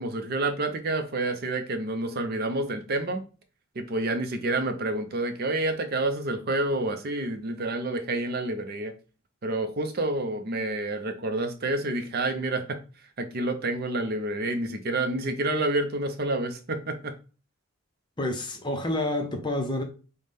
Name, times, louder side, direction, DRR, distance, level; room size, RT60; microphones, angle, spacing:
voice 1, 0.0-3.2 3.8-8.9 9.4-12.8 13.2-17.1, right 2 dB, 45° right, 0.5 m, -28 dB
voice 2, 18.2-19.8, left 1 dB, 20° left, 0.5 m, -28 dB
5.6 x 2.1 x 3.3 m
head